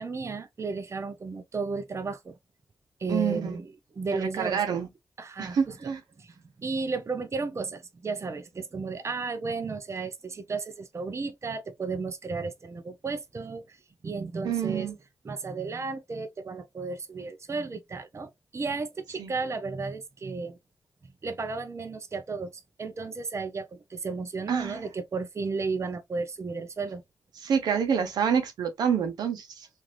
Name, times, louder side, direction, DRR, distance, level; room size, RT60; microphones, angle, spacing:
voice 1, 0.0-2.4 3.0-3.7 3.9-4.8 5.2-5.9 6.2-13.8 14.0-14.9 15.2-20.6 21.2-27.0, right 4 dB, 45° right, 0.6 m, -34 dB
voice 2, 3.1-3.6 4.1-4.9 5.4-6.0 14.4-14.9 19.2-19.3 24.5-24.8 27.4-29.7, right 7 dB, 85° right, 0.7 m, -27 dB
3.2 x 2.5 x 2.5 m
cardioid pair, 50°, 7 cm